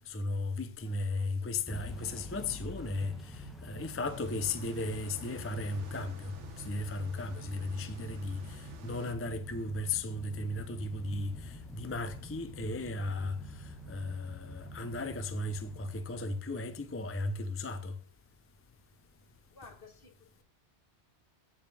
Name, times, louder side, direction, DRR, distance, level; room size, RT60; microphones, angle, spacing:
voice 1, 0.1-18.0, left 2 dB, 20° left, 0.4 m, -36 dB
voice 2, 0.8-1.3 3.6-4.0 19.5-20.4, left 4 dB, 55° left, 1.6 m, -57 dB
Motor vehicle (road) / Engine starting / Accelerating revving vroom, 1.7-16.6, equal, ahead, 0.9 m, -47 dB
sound 1, 4.1-9.1, right 6 dB, 85° right, 1.3 m, -53 dB
14.0 x 5.0 x 3.4 m
omnidirectional pair, 1.2 m